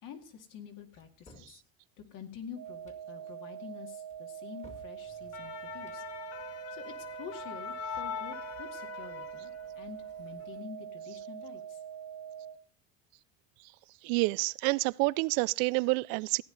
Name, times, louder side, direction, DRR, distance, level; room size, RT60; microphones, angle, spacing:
voice 1, 0.0-1.6 2.1-6.0 6.7-11.8, left 7 dB, 60° left, 2.4 m, -48 dB
sound 1, 1.0-1.6 2.7-3.1 4.1-5.0 5.7-6.1, left 1 dB, 20° left, 1.9 m, -57 dB
sound 2, 2.6-12.6, right 9 dB, 45° right, 1.1 m, -44 dB
sound 3, 5.1-9.8 10.2-10.4, left 9 dB, 45° left, 1.0 m, -42 dB
voice 2, 14.0-16.4, right 25 dB, 75° right, 0.5 m, -28 dB
15.5 x 9.7 x 4.0 m
supercardioid pair, 115°, 36 cm